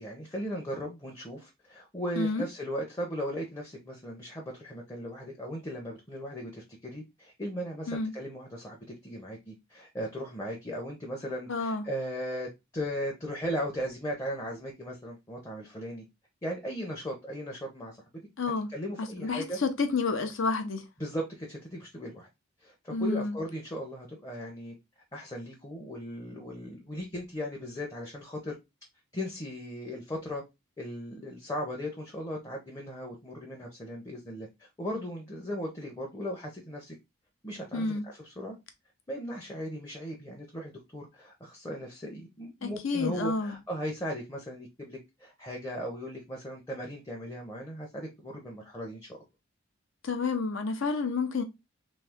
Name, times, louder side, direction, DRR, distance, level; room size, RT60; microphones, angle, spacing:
voice 1, 0.0-16.0 16.4-18.0 18.7-19.6 21.0-22.3 22.6-24.8 25.1-28.6 29.1-30.4 30.8-37.0 37.4-38.6 39.1-49.1, equal, 15° left, 0.6 m, -37 dB
voice 2, 11.5-11.8 18.4-18.7 19.0-20.8 22.9-23.4 37.7-38.0 42.6-43.6 50.0-51.4, left 4 dB, 80° left, 0.7 m, -30 dB
3.1 x 2.7 x 3.5 m
head